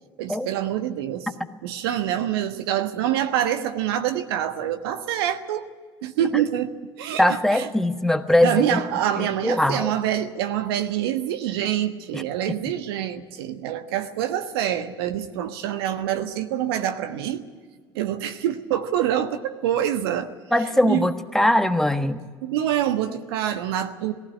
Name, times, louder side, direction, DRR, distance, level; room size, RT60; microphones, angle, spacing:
voice 1, 0.2-1.3 1.6-5.6 6.0-7.2 7.5-7.7 8.4-17.4 17.9-20.3 20.8-21.1 22.4-24.1, right 11 dB, 75° right, 8 dB, 1.3 m, -26 dB
voice 2, 7.2-8.8 9.2-9.9 12.1-12.2 20.5-22.2, left 1 dB, 5° left, 7 dB, 1.3 m, -21 dB
18.5 x 15.5 x 9.6 m, 1.5 s
hypercardioid pair, 70°, 13 cm